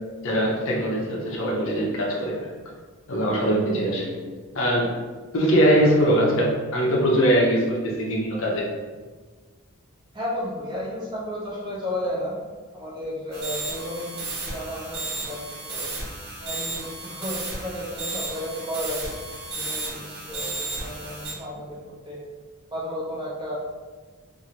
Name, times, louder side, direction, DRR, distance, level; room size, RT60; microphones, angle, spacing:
voice 1, 0.2-2.5 3.1-4.1 4.5-4.9 5.3-8.7, equal, 60° left, -2 dB, 0.6 m, -22 dB
voice 2, 10.1-12.4 12.7-15.9 16.4-19.1 19.5-21.8 22.0-22.2 22.7-23.6, equal, 20° right, -6 dB, 0.7 m, -33 dB
sound 1, 13.3-21.3, right 3 dB, 50° right, 1.0 m, -33 dB
2.7 x 2.5 x 2.8 m, 1.4 s
head